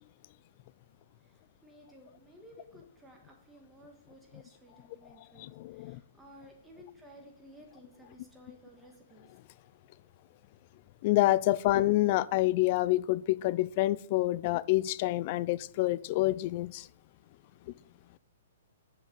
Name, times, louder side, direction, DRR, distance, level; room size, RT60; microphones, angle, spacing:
voice 1, 1.2-9.3, equal, 10° right, 1.7 m, -55 dB
voice 2, 5.4-6.0 11.0-16.9, left 17 dB, 45° left, 0.3 m, -27 dB
9.5 x 7.4 x 4.0 m
hypercardioid pair, 125°, 0 cm